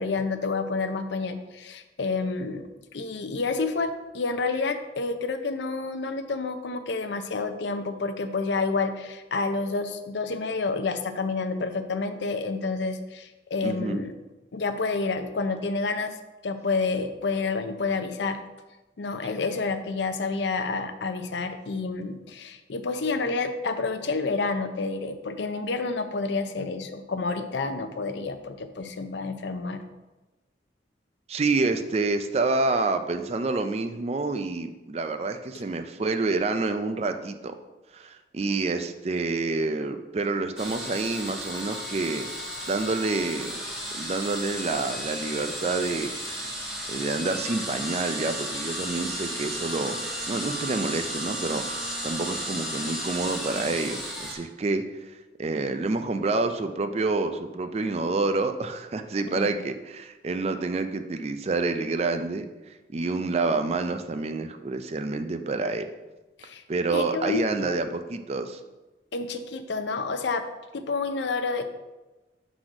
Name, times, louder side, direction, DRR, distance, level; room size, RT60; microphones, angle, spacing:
voice 1, 0.0-14.1 14.5-16.2 16.4-18.4 19.0-29.8 59.3-59.5 66.4-66.6 66.9-67.8 69.1-70.4 70.7-71.7, left 4 dB, 70° left, 9 dB, 0.5 m, -29 dB
voice 2, 13.6-14.0 31.3-37.5 37.9-42.3 42.7-43.5 43.9-46.5 46.9-51.6 52.0-55.1 55.4-65.9 66.7-68.6, right 3 dB, 35° right, 8 dB, 0.4 m, -28 dB
sound 1, 40.6-54.3, equal, ahead, 1.2 m, -34 dB
6.2 x 4.0 x 4.9 m, 1.1 s
head